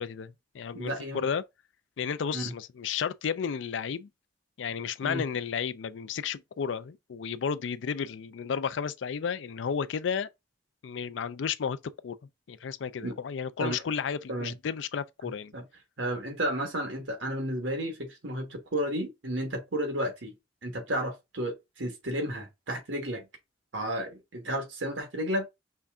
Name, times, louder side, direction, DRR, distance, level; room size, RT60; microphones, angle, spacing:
voice 1, 0.0-1.4 2.0-4.1 4.6-10.3 10.8-11.8 12.0-12.2 12.5-15.5, left 6 dB, 80° left, 0.4 m, -32 dB
voice 2, 0.7-1.2 2.3-2.5 5.0-5.2 13.0-13.1 13.6-13.8 14.3-14.5 15.5-15.6 16.0-20.3 20.6-23.2 23.7-25.5, equal, 80° right, 1.4 m, -32 dB
5.5 x 2.4 x 3.5 m
head